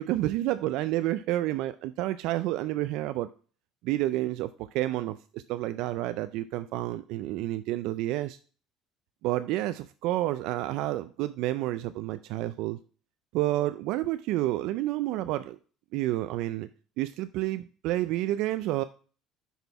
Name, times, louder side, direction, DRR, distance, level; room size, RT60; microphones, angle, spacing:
voice 1, 0.0-3.3 3.8-8.4 9.2-12.8 13.3-15.6 15.9-16.7 17.0-18.8, right 15 dB, 65° right, 0.3 m, -29 dB
6.0 x 5.4 x 4.5 m
cardioid pair, 165°, 0 cm